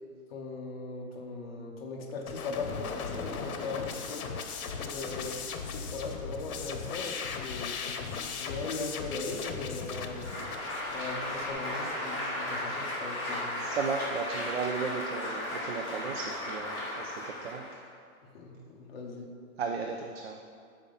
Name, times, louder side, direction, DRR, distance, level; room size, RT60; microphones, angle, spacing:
voice 1, 0.3-4.3 4.7-10.4 10.9-13.6 18.3-19.3, left 3 dB, 45° left, -1 dB, 1.0 m, -39 dB
sound 1, 2.3-11.5, left 5 dB, 85° left, 0.9 m, -38 dB
Applause, 10.1-17.8, left 1 dB, 20° left, 2.0 m, -35 dB
voice 2, 13.6-17.6 19.6-20.4, right 5 dB, 50° right, 2 dB, 0.5 m, -35 dB
7.1 x 5.1 x 5.3 m, 2.2 s
hypercardioid pair, 175°, 42 cm